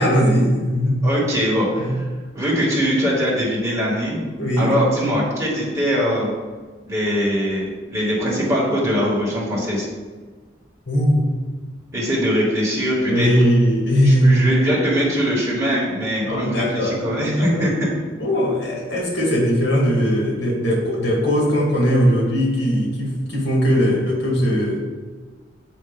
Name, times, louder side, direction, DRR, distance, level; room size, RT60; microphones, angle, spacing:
voice 1, 0.0-1.0 1.8-2.0 4.4-4.7 10.9-11.3 13.0-14.5 16.3-17.1 17.3-17.7 18.2-24.8, equal, 75° left, -2 dB, 1.8 m, -19 dB
voice 2, 1.0-1.9 2.3-4.2 4.6-6.3 6.9-9.8 11.9-13.3 14.0-17.9, equal, 15° right, -6 dB, 1.5 m, -21 dB
7.2 x 2.7 x 5.3 m, 1.4 s
head